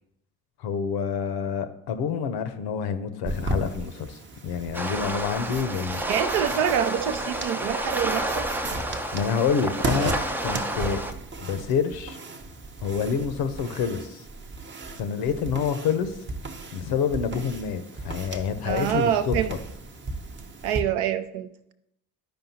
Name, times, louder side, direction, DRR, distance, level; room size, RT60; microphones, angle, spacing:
voice 1, 0.6-6.0 9.1-10.1 10.4-11.0 11.4-12.2 12.8-14.2 14.9-16.2 16.7-19.4, left 6 dB, 50° left, 11 dB, 0.8 m, -27 dB
sound 1, 3.2-20.8, right 2 dB, 25° right, 0.8 m, -36 dB
sound 2, 4.7-11.1, right 1 dB, 5° right, 0.4 m, -30 dB
voice 2, 6.1-8.5 18.6-19.5 20.6-21.5, right 10 dB, 55° right, 10 dB, 0.6 m, -26 dB
12.0 x 5.2 x 2.9 m, 0.81 s
figure-of-eight pair, 50°, 47 cm